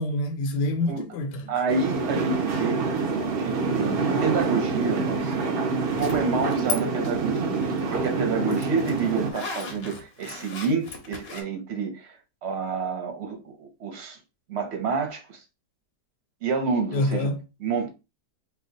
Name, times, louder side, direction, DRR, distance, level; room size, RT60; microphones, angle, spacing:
voice 1, 0.0-1.5 16.9-17.4, left 1 dB, 90° left, 1.2 m, -26 dB
voice 2, 1.5-2.8 3.3-12.1 12.4-14.2 14.5-15.4 16.4-17.3 17.6-17.9, right 4 dB, 50° right, 0.9 m, -29 dB
sound 1, 1.7-9.3, right 4 dB, 70° right, 0.5 m, -26 dB
Zipper (clothing), 5.9-6.8 7.0-11.4, left 4 dB, 55° left, 0.7 m, -36 dB
2.7 x 2.3 x 3.8 m
omnidirectional pair, 1.8 m